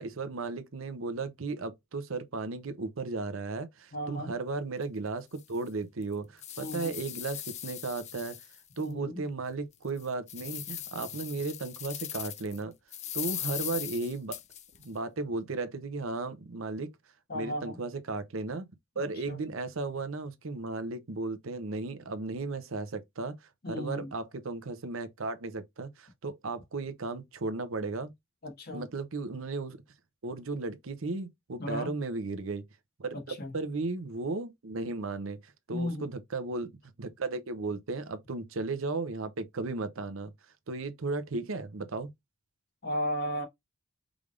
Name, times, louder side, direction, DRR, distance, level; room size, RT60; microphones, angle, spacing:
voice 1, 0.0-8.4 8.8-12.7 13.1-14.4 14.8-16.9 17.3-18.7 19.0-23.3 23.7-28.1 28.7-29.8 30.2-32.6 33.0-36.7 37.0-40.3 40.7-42.1, right 3 dB, 70° right, 0.7 m, -35 dB
voice 2, 3.9-4.3 6.6-6.9 8.8-9.2 17.3-17.8 18.9-19.4 23.6-24.1 28.4-28.9 31.6-31.9 33.1-33.5 35.7-36.0 42.8-43.4, equal, 50° left, 1.6 m, -35 dB
sound 1, 4.8-4.9 5.4-5.5 6.0-8.8 9.3-9.4 9.9-12.6 12.9-14.9, left 11 dB, 35° left, 0.5 m, -39 dB
5.0 x 3.4 x 2.4 m
head